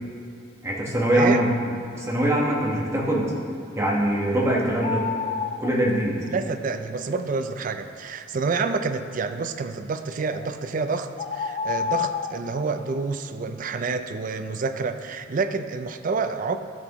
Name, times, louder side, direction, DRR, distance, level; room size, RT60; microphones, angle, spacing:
voice 1, 0.6-3.3 3.8-5.0 5.6-6.2, right 1 dB, 15° right, -4 dB, 1.3 m, -23 dB
voice 2, 1.1-1.5 6.3-16.6, right 4 dB, 45° right, 9 dB, 0.4 m, -28 dB
sound 1, 4.8-5.7 10.3-10.5 11.2-12.4, left 6 dB, 35° left, 0.3 m, -28 dB
13.0 x 6.0 x 3.0 m, 2.5 s
head